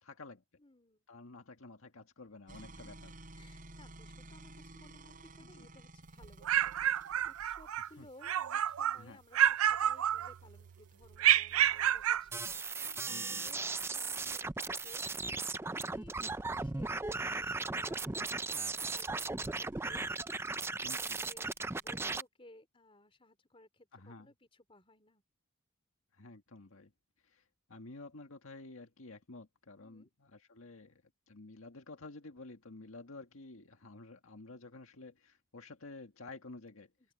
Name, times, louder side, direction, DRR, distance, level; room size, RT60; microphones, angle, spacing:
voice 1, 0.0-0.4 1.1-3.1 5.5-5.7 8.0-8.1 8.9-9.2 13.1-13.5 20.8-21.2 23.9-24.3 26.1-26.9 27.2-36.9, left 2 dB, 75° left, 1.8 m, -51 dB
voice 2, 0.6-1.1 2.7-3.0 3.3-15.0 15.6-16.1 16.5-21.5 21.8-25.2 29.8-30.1 37.0-37.1, left 1 dB, 25° left, 4.0 m, -60 dB
sound 1, 2.5-22.1, right 2 dB, 40° right, 7.6 m, -57 dB
sound 2, 6.2-7.9 8.2-9.0 9.3-10.6 11.2-12.3, right 10 dB, 80° right, 0.5 m, -29 dB
sound 3, 12.3-22.2, right 3 dB, 10° right, 0.4 m, -37 dB
open air
head